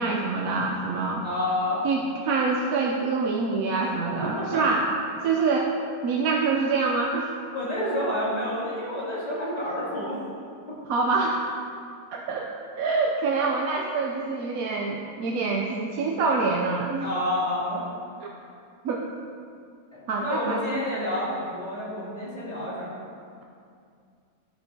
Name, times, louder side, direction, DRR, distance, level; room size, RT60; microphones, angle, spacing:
voice 1, 0.0-1.2 1.8-4.8 5.2-5.7 6.0-7.3 10.9-11.4 12.1-12.5 12.8-17.1 18.8-19.0 20.1-20.6, right 4 dB, 75° right, 0 dB, 1.1 m, -25 dB
voice 2, 1.2-1.9 3.8-4.0 4.2-4.6 7.5-10.2 17.0-17.8 19.9-23.0, left 1 dB, 25° left, -9 dB, 2.7 m, -29 dB
14.5 x 6.8 x 2.8 m, 2.3 s
omnidirectional pair, 1.6 m